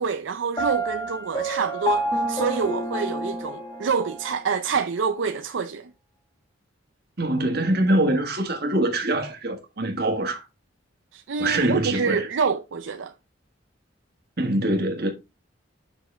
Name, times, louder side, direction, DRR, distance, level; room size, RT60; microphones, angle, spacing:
voice 1, 0.0-5.9 11.1-13.1, right 5 dB, 75° right, 0.5 m, -27 dB
Piano, 0.6-4.4, right 1 dB, 20° left, 1.3 m, -28 dB
voice 2, 7.2-10.4 11.4-12.3 14.4-15.1, right 1 dB, 50° right, 1.6 m, -24 dB
7.4 x 5.7 x 3.3 m
head